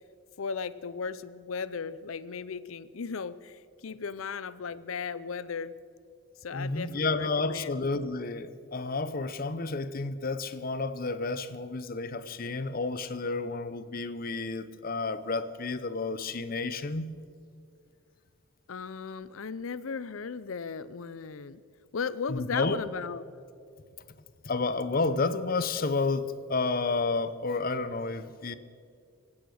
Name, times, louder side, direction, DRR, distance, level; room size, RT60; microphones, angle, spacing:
voice 1, 0.4-5.7 6.4-7.7 18.7-21.6 21.9-23.3, left 5 dB, 80° left, 16 dB, 0.6 m, -36 dB
voice 2, 6.5-17.1 22.3-22.8 24.4-28.5, left 3 dB, 45° left, 12 dB, 0.7 m, -31 dB
24.5 x 8.8 x 6.4 m, 2.3 s
head